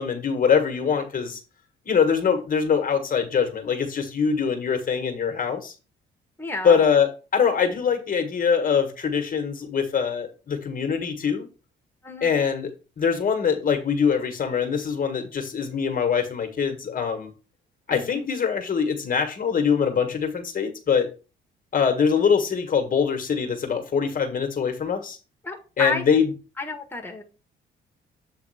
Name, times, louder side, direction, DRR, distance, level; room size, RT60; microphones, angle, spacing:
voice 1, 0.0-1.4 1.8-5.7 6.6-11.5 12.2-12.7 13.0-17.3 17.9-21.1 21.7-25.2 25.8-26.3, left 6 dB, 45° left, 6 dB, 1.6 m, -23 dB
voice 2, 6.4-6.8 12.0-12.3 17.9-18.2 25.4-26.0 26.6-27.2, left 3 dB, 10° left, 2 dB, 1.4 m, -31 dB
7.9 x 3.5 x 4.9 m, 0.33 s
cardioid pair, 90°, 20 cm